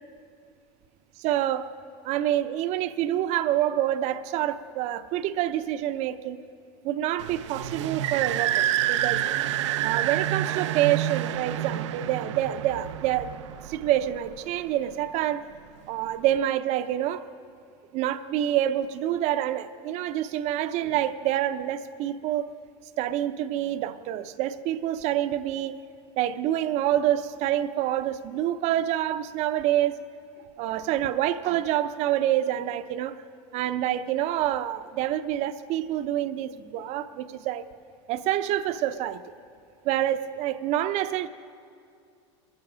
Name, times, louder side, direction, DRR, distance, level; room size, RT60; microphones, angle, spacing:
voice 1, 1.2-1.7 2.0-6.4 6.8-9.3 9.8-13.3 13.6-15.5 15.9-17.3 17.9-22.5 23.0-25.8 26.2-30.0 30.6-33.1 33.5-37.7 38.1-39.2 39.8-41.3, right 12 dB, 50° right, 0.7 m, -27 dB
sound 1, 7.2-14.5, right 12 dB, 85° right, 0.5 m, -28 dB
23.0 x 9.2 x 5.0 m
supercardioid pair, 125°, 15 cm